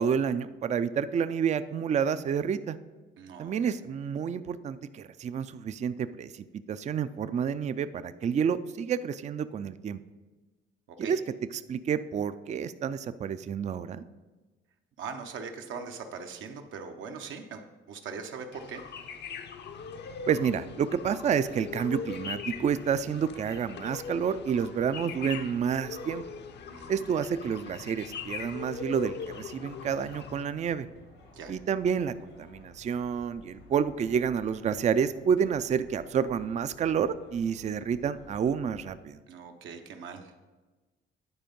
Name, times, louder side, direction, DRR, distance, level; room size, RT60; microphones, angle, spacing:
voice 1, 0.0-2.8 3.4-10.0 11.0-11.2 11.7-14.0 20.3-26.2 26.9-30.9 31.5-39.2, right 7 dB, 35° right, 13 dB, 0.4 m, -29 dB
voice 2, 3.2-3.7 10.9-11.1 15.0-18.8 26.7-27.0 31.3-31.5 39.3-40.5, right 5 dB, 80° right, 5 dB, 0.9 m, -41 dB
sound 1, 18.5-30.4, left 6 dB, 60° left, 0.6 m, -41 dB
sound 2, 19.7-38.9, left 2 dB, 90° left, 1.9 m, -55 dB
10.0 x 4.4 x 5.2 m, 1.2 s
cardioid pair, 90°, 20 cm